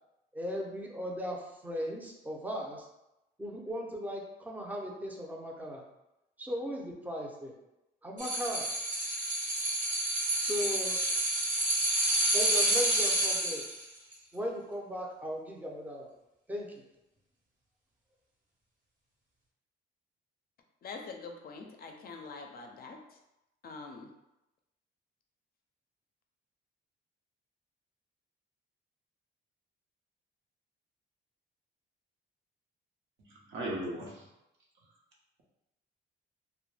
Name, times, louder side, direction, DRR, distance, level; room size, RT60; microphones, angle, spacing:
voice 1, 0.3-2.9 3.4-5.8 6.4-7.5 8.0-8.6 10.4-11.0 12.3-13.6 14.3-16.1 16.5-16.8, equal, 10° right, 0 dB, 0.5 m, -37 dB
sound 1, 8.2-13.8 14.1-14.2, right 1 dB, 40° right, 0.7 m, -29 dB
voice 2, 20.8-23.0 23.6-24.1, left 4 dB, 50° left, 3 dB, 0.4 m, -44 dB
voice 3, 33.3-34.3, right 1 dB, 80° right, -3 dB, 0.8 m, -37 dB
2.2 x 2.1 x 3.2 m, 0.91 s
cardioid pair, 90°, 20 cm